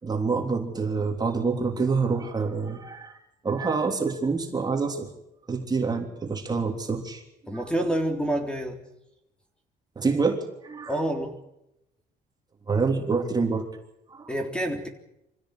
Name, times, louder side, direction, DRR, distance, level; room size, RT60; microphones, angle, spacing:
voice 1, 0.0-3.2 3.4-5.1 5.5-7.2 9.9-11.0 12.7-13.6 14.1-14.3, right 4 dB, 25° right, 2 dB, 3.4 m, -27 dB
voice 2, 7.5-8.8 10.9-11.3 14.3-14.9, right 1 dB, 5° left, 3 dB, 3.6 m, -27 dB
25.5 x 16.0 x 8.2 m, 0.86 s
cardioid pair, 110°, 17 cm